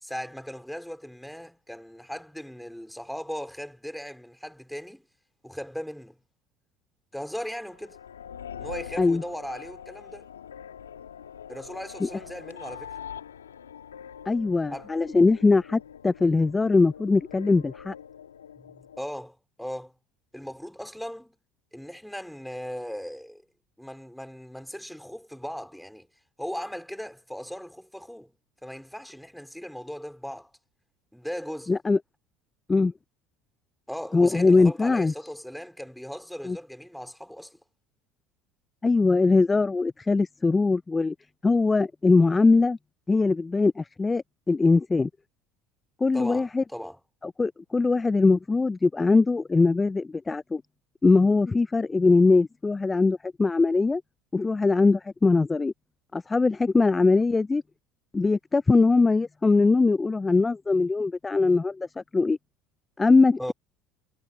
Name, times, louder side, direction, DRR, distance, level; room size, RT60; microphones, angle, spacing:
voice 1, 0.0-5.1 5.4-6.2 7.1-8.0 8.6-10.3 11.5-13.0 14.7-14.9 18.6-19.9 20.3-21.4 21.7-23.4 23.8-26.1 26.4-28.3 28.6-30.5 31.1-31.7 33.9-37.6 46.1-47.0 63.4-63.5, equal, ahead, 3.7 m, -38 dB
sound 1, 7.7-19.0, left 8 dB, 90° left, 1.7 m, -43 dB
voice 2, 14.3-17.9 31.7-32.0 32.7-32.9 34.1-35.1 36.5-36.6 38.8-41.1 41.4-42.8 43.1-45.1 46.0-46.6 47.4-50.6 51.0-54.0 54.3-55.7 56.1-57.6 58.1-62.4 63.0-63.5, left 3 dB, 20° left, 0.4 m, -21 dB
hypercardioid pair, 70°, 0 cm